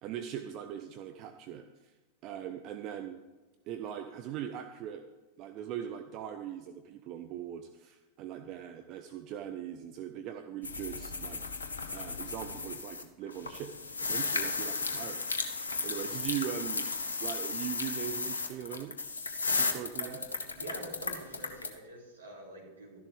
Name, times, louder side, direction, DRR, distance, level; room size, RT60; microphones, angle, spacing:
voice 1, 0.0-1.7 2.2-3.2 3.7-5.0 5.4-11.4 11.9-13.7 14.0-15.6 15.8-16.9 17.2-18.9 19.6-20.2, right 10 dB, 40° right, 7 dB, 0.7 m, -40 dB
sound 1, 10.6-13.0 13.3-21.7, left 4 dB, 75° left, 1.1 m, -35 dB
voice 2, 20.0-20.3 20.5-23.0, right 2 dB, 75° right, -3 dB, 3.7 m, -46 dB
13.0 x 11.5 x 3.4 m, 1.2 s
figure-of-eight pair, 90°, 0 cm